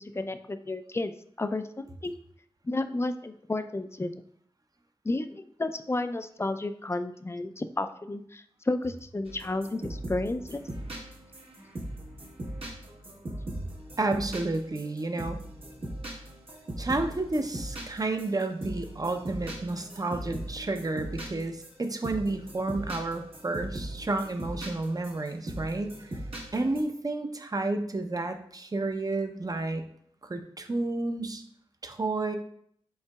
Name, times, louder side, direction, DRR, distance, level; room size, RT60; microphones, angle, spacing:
voice 1, 0.0-1.7 2.0-2.1 2.6-4.1 5.0-10.6, left 2 dB, 25° left, 10 dB, 0.4 m, -32 dB
sound 1, 9.2-26.8, right 1 dB, 70° right, 1.2 m, -39 dB
voice 2, 14.0-15.4 16.8-26.2 26.5-29.8 30.3-31.4 31.8-32.4, right 2 dB, 40° right, 6 dB, 0.6 m, -31 dB
5.4 x 3.9 x 2.3 m, 0.64 s
cardioid pair, 45°, 10 cm